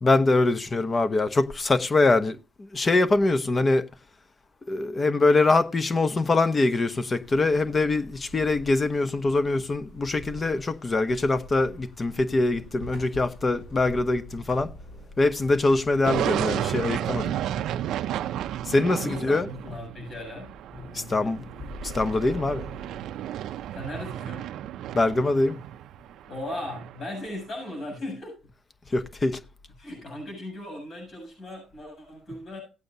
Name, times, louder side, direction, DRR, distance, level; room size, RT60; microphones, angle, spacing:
voice 1, 0.0-3.9 4.7-14.7 15.2-17.3 18.6-19.5 20.9-21.4 21.8-22.6 24.9-25.6 28.9-29.4, left 2 dB, 30° left, 0.9 m, -23 dB
sound 1, 7.2-16.3, equal, 90° left, 7.6 m, -45 dB
sound 2, 16.0-27.3, right 11 dB, 85° right, 0.5 m, -32 dB
voice 2, 17.4-17.7 19.0-21.5 23.7-24.5 26.3-28.4 29.8-32.6, left 1 dB, 50° left, 7.2 m, -38 dB
17.5 x 8.6 x 2.7 m
cardioid pair, 90°, 0 cm